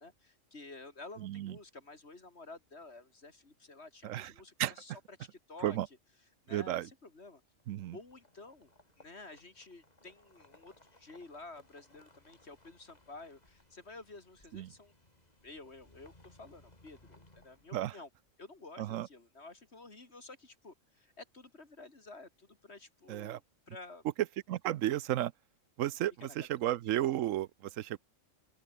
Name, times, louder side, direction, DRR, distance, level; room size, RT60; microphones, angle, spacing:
voice 1, 0.0-5.8 6.4-7.4 7.9-8.7 9.0-14.9 15.4-18.1 18.4-24.0, left 3 dB, 55° left, 3.4 m, -51 dB
voice 2, 1.2-1.6 4.0-4.3 4.6-4.7 5.6-5.9 6.5-6.9 7.7-8.0 14.5-14.7 17.7-17.9 18.8-19.1 23.1-23.4 24.5-25.3 25.8-28.0, right 13 dB, 85° right, 1.0 m, -33 dB
sound 1, 7.5-18.3, left 1 dB, 30° left, 4.0 m, -64 dB
open air
omnidirectional pair, 1.3 m